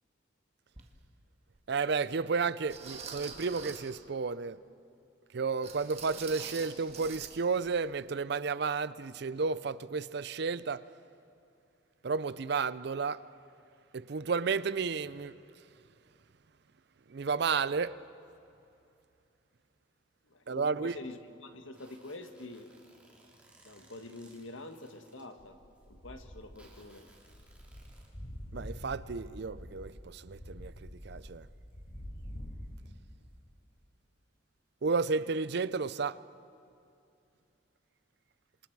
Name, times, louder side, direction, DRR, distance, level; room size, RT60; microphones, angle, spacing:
sound 1, 0.8-0.9 1.6-1.7 2.7-4.0 5.6-7.4 7.6-7.8 8.2-8.3, right 5 dB, 30° right, 1.7 m, -45 dB
voice 1, 1.7-4.6 5.3-10.8 12.0-13.2 13.9-15.3 17.1-18.0 20.5-20.9 28.5-31.5 34.8-36.2, right 5 dB, 55° right, 0.5 m, -32 dB
voice 2, 20.3-22.7 23.6-25.6 25.9-27.1, left 2 dB, 75° left, 1.6 m, -46 dB
sound 2, 21.7-25.2 25.7-25.8 26.5-28.1, right 2 dB, 5° right, 3.2 m, -62 dB
sound 3, 25.4-33.0, equal, 45° left, 5.2 m, -46 dB
28.0 x 26.0 x 4.7 m
head